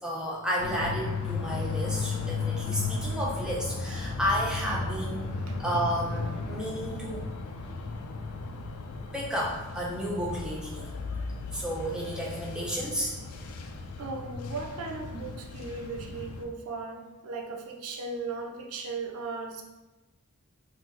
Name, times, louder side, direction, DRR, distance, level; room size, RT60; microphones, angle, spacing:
voice 1, 0.0-5.3 5.6-7.2 9.1-10.9 11.5-13.1, equal, 5° right, -5 dB, 0.6 m, -32 dB
sound 1, 0.6-16.4, left 3 dB, 85° left, 0.4 m, -35 dB
voice 2, 14.0-19.6, right 3 dB, 80° right, 1 dB, 0.5 m, -37 dB
2.8 x 2.6 x 3.7 m, 1.1 s
head